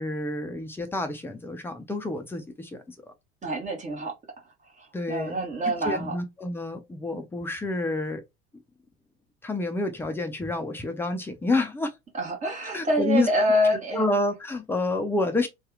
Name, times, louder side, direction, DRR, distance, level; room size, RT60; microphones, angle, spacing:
voice 1, 0.0-3.1 4.9-5.4 5.8-8.2 9.4-11.9 12.7-13.3 13.9-15.5, left 2 dB, 5° left, 0.6 m, -28 dB
voice 2, 3.4-4.1 4.6-6.1 12.1-14.0, equal, 20° right, 1.1 m, -26 dB
2.7 x 2.3 x 3.6 m
figure-of-eight pair, 70°, 33 cm